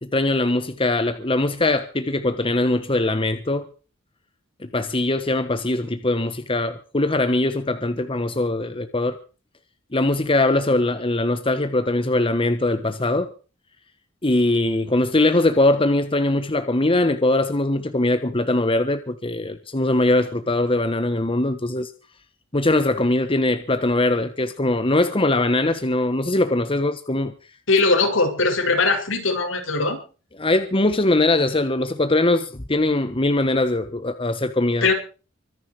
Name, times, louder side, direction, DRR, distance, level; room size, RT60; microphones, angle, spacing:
voice 1, 0.0-3.6 4.6-9.2 9.9-13.3 14.2-21.9 22.5-27.3 30.4-34.9, left 2 dB, 25° left, 1.3 m, -21 dB
voice 2, 27.7-30.0 34.8-34.9, left 3 dB, 70° left, 6.7 m, -20 dB
25.0 x 10.0 x 4.9 m
head